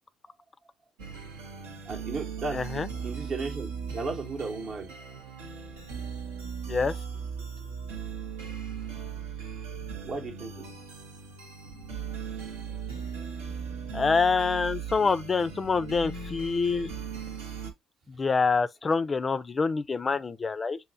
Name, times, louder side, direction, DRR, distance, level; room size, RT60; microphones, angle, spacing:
sound 1, 1.0-17.7, right 6 dB, 90° right, 0.6 m, -38 dB
voice 1, 1.9-4.9 10.0-10.7, right 3 dB, 60° right, 0.8 m, -35 dB
voice 2, 2.5-2.9 6.7-7.0 13.9-16.9 18.1-20.8, left 4 dB, 35° left, 0.3 m, -26 dB
5.5 x 2.0 x 2.4 m
hypercardioid pair, 55°, 0 cm